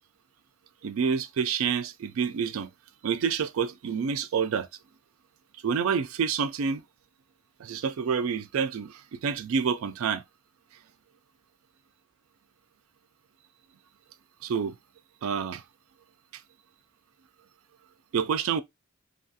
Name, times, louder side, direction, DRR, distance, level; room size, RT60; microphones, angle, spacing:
voice 1, 0.8-2.7 3.0-4.7 5.6-6.8 7.6-10.2 14.4-14.7 15.2-15.6 18.1-18.6, right 6 dB, 80° right, 0.3 m, -28 dB
2.8 x 2.3 x 2.7 m
head